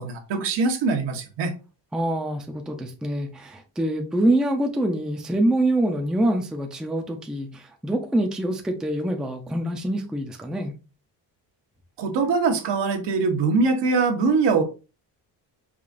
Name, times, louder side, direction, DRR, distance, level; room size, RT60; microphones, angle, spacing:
voice 1, 0.0-1.5 12.0-14.6, right 4 dB, 70° right, 1.0 m, -22 dB
voice 2, 1.9-10.7, right 1 dB, ahead, 0.4 m, -25 dB
4.8 x 2.4 x 2.5 m
cardioid pair, 120°, 44 cm